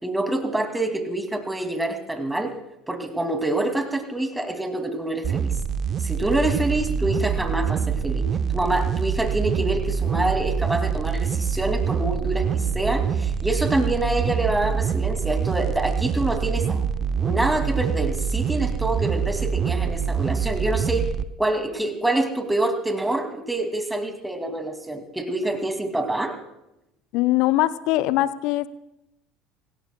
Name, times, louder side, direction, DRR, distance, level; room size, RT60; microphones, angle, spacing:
voice 1, 0.0-2.5 2.9-5.5 6.0-16.8 17.2-21.1 21.4-26.3, right 1 dB, 5° right, 6 dB, 2.4 m, -26 dB
sound 1, 5.2-21.2, right 7 dB, 40° right, 0.7 m, -25 dB
voice 2, 27.1-28.7, left 16 dB, 55° left, 17 dB, 0.6 m, -21 dB
25.5 x 18.5 x 2.3 m, 0.88 s
figure-of-eight pair, 65°, 0 cm